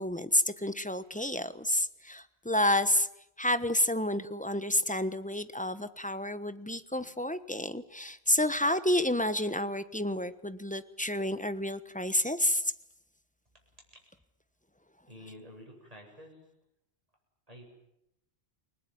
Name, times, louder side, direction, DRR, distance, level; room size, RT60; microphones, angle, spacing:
voice 1, 0.0-3.1 3.4-12.7, left 1 dB, 10° left, 13 dB, 1.1 m, -29 dB
voice 2, 15.1-16.4 17.5-17.7, equal, 35° right, 0 dB, 8.2 m, -49 dB
30.0 x 19.5 x 9.5 m, 0.82 s
omnidirectional pair, 1.1 m